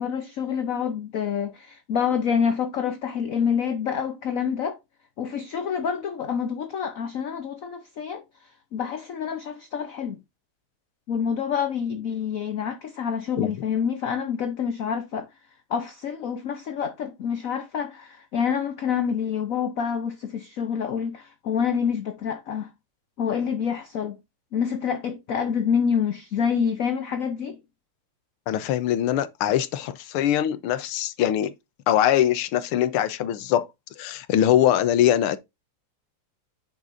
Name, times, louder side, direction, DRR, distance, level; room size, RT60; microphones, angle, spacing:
voice 1, 0.0-4.8 5.2-8.2 8.7-10.2 11.1-15.3 15.7-22.7 23.2-24.2 24.5-27.6, left 7 dB, 55° left, 0.9 m, -27 dB
voice 2, 28.5-31.5 31.9-33.7 34.0-35.4, left 11 dB, 90° left, 1.7 m, -22 dB
9.8 x 6.0 x 2.6 m
omnidirectional pair, 2.3 m